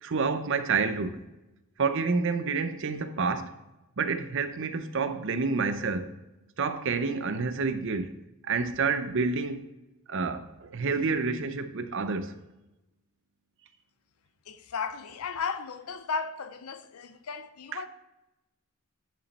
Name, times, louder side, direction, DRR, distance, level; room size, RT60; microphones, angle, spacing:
voice 1, 0.0-1.2 1.8-3.6 4.0-6.1 6.6-8.2 8.5-9.6 10.1-12.3 17.7-17.8, right 4 dB, 60° right, 0.6 m, -29 dB
voice 2, 14.5-17.9, left 5 dB, 80° left, 0.5 m, -35 dB
10.0 x 5.2 x 4.1 m
head